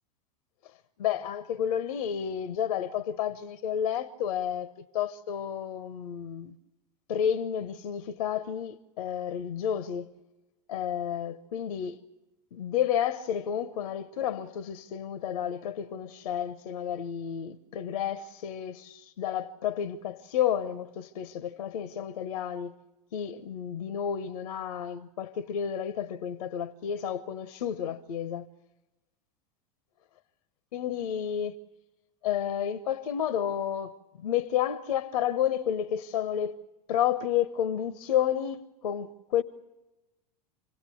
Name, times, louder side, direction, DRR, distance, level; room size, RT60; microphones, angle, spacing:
voice 1, 1.0-6.5 7.1-10.1 10.7-12.0 12.5-22.7 23.1-28.5 30.7-31.5 32.2-36.5 36.9-39.4, left 9 dB, 75° left, 0.9 m, -31 dB
26.5 x 17.5 x 8.4 m
hypercardioid pair, 95°, 20 cm